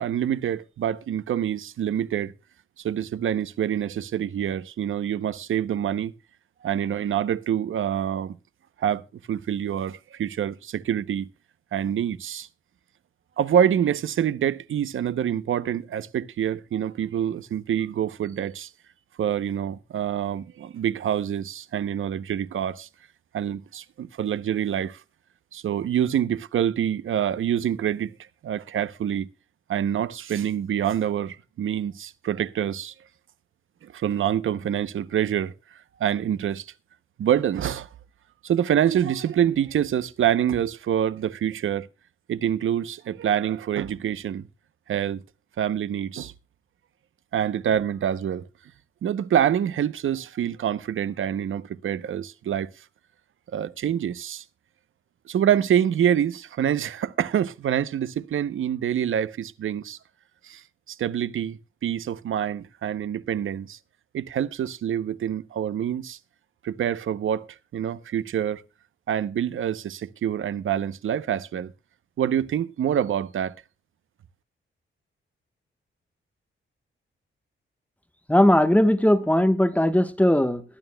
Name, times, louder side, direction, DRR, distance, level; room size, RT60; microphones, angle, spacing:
voice 1, 0.0-2.3 2.8-6.1 6.6-8.4 8.8-9.0 9.3-11.3 11.7-12.5 13.4-18.7 19.2-22.9 23.3-25.0 25.5-28.1 28.4-29.3 29.7-32.9 33.8-35.5 36.0-36.7 37.2-37.9 38.4-41.9 42.3-44.5 44.9-45.2 45.6-46.3 47.3-48.5 49.0-52.7 53.5-54.4 55.3-60.0 60.4-60.6 60.9-63.8 64.1-66.2 66.6-67.5 67.7-68.6 69.1-71.7 72.2-73.6, right 9 dB, 75° right, 0.8 m, -26 dB
voice 2, 78.3-80.6, left 1 dB, 5° left, 1.1 m, -19 dB
22.0 x 11.0 x 2.2 m
wide cardioid pair, 115°, 21 cm